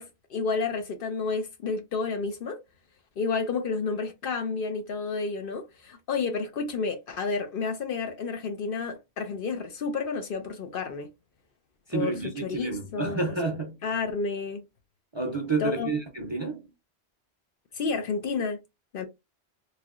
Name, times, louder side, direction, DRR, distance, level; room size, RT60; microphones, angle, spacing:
voice 1, 0.0-2.6 3.2-11.1 11.9-12.1 12.4-13.2 13.8-14.6 15.6-15.9 17.7-18.6 18.9-19.1, left 4 dB, 60° left, 0.7 m, -30 dB
voice 2, 11.9-13.8 15.1-16.7, right 3 dB, 30° right, 0.5 m, -30 dB
3.2 x 2.7 x 2.4 m
omnidirectional pair, 1.1 m